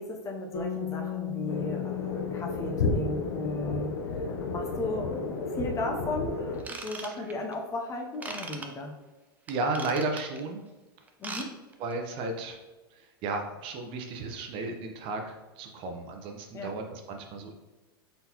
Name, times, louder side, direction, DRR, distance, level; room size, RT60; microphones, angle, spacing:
voice 1, 0.0-8.9 11.2-11.5 16.5-16.8, left 2 dB, 25° left, 2 dB, 0.7 m, -36 dB
sound 1, 0.5-4.8, left 11 dB, 45° left, 1.1 m, -37 dB
sound 2, 1.5-6.6, left 3 dB, 85° left, 0.7 m, -32 dB
Ratchet pawl / Tools, 6.6-7.5 8.2-8.7 9.5-10.4 11.1-11.5 11.7-11.9 12.4-12.5, right 3 dB, 10° right, 0.5 m, -39 dB
voice 2, 9.5-10.6 11.8-12.6 12.9-17.6, right 3 dB, 45° right, 3 dB, 0.8 m, -34 dB
4.0 x 3.9 x 3.0 m, 1.2 s
hypercardioid pair, 120°, 12 cm